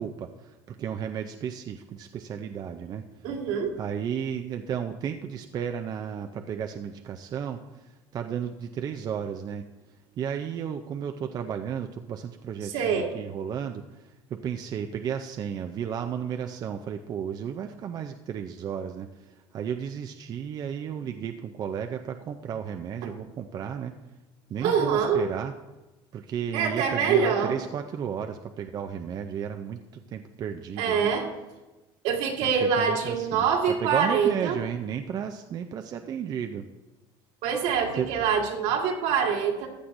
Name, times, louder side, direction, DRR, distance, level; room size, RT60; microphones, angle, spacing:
voice 1, 0.0-3.0 3.8-9.7 10.2-24.0 24.5-25.5 26.1-31.1 32.4-36.6 37.9-38.1, right 8 dB, 35° right, 6 dB, 0.4 m, -33 dB
voice 2, 3.2-3.7 12.6-13.1 23.0-23.1 24.6-25.2 26.5-27.6 30.8-31.3 32.0-34.6 37.4-39.7, right 6 dB, 70° right, 1 dB, 1.8 m, -25 dB
14.5 x 9.6 x 2.6 m, 1.1 s
cardioid pair, 135°, 12 cm